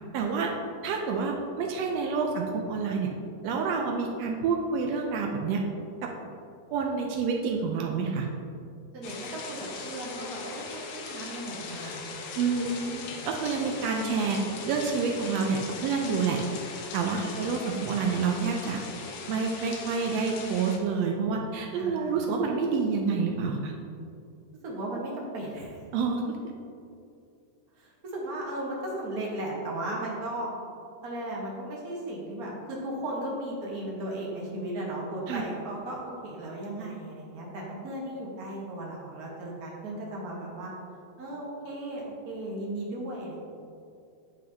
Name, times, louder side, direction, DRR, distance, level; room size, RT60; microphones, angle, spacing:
voice 1, 0.1-0.5 0.8-3.1 3.4-5.6 6.0-6.1 6.7-8.3 12.4-16.4 16.9-18.8 19.3-23.7 25.9-26.2 35.3-35.4, right 5 dB, 85° right, 1 dB, 1.5 m, -28 dB
voice 2, 8.9-12.1 17.1-17.5 21.7-22.2 24.6-25.8 27.8-30.5 31.0-40.7 41.2-43.4, right 1 dB, 65° right, -4 dB, 0.9 m, -36 dB
sound 1, 9.0-20.8, left 4 dB, 75° left, 1.6 m, -39 dB
9.1 x 5.6 x 2.7 m, 2.5 s
omnidirectional pair, 3.5 m